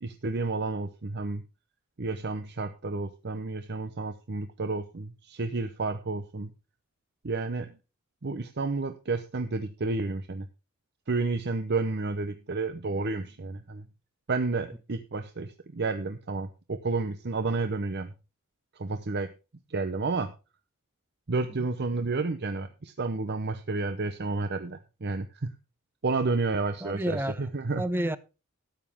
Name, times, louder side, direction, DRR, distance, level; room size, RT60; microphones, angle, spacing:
voice 1, 0.0-1.4 2.0-6.5 7.2-7.7 8.2-10.5 11.1-13.9 14.3-18.1 18.8-19.3 19.7-20.3 21.3-25.5 26.0-27.8, right 3 dB, 50° right, 0.7 m, -31 dB
voice 2, 26.8-27.5 27.8-28.2, right 1 dB, 10° right, 0.6 m, -30 dB
13.0 x 9.2 x 3.6 m
head